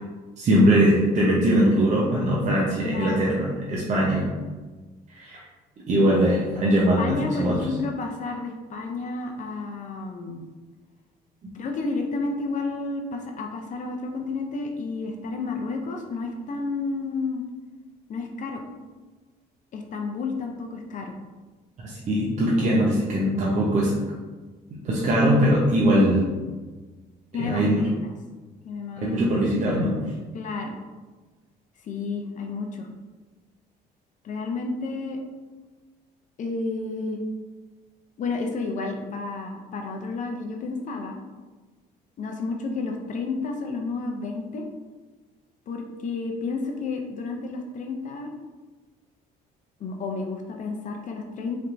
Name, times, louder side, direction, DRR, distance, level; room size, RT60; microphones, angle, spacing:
voice 1, 0.4-4.3 5.1-5.5 5.9-7.6 21.8-23.9 24.8-26.3 27.4-27.8 29.0-30.0, equal, 45° right, -5 dB, 0.8 m, -21 dB
voice 2, 2.8-3.3 6.7-10.4 11.5-17.4 18.1-18.6 19.7-21.2 27.3-27.6 27.9-28.1 28.6-29.2 30.3-30.8 31.8-32.9 34.2-35.2 36.4-37.2 38.2-41.2 42.2-44.6 45.7-48.3 49.8-51.6, left 3 dB, 50° left, 2 dB, 0.6 m, -31 dB
4.3 x 3.4 x 2.6 m, 1.3 s
cardioid pair, 110°, 17 cm